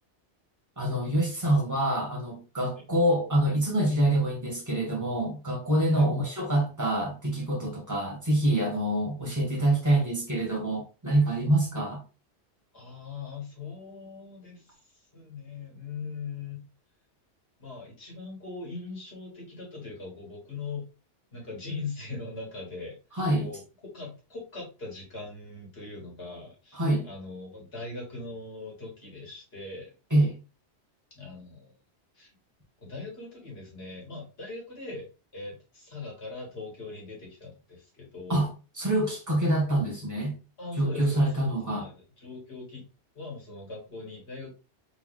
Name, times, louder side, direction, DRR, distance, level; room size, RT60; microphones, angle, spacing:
voice 1, 0.8-12.0 23.2-23.5 26.7-27.1 30.1-30.3 38.3-38.5 38.8-40.3 40.8-41.9, right 1 dB, 15° right, 1.7 m, -26 dB
voice 2, 12.7-14.8 15.1-16.6 17.6-20.9 21.3-23.0 23.4-29.9 31.2-31.7 32.2-32.3 32.8-35.1 35.3-38.5 40.6-42.8 43.1-44.5, left 3 dB, 60° left, 2.2 m, -40 dB
4.0 x 3.4 x 3.2 m
omnidirectional pair, 1.2 m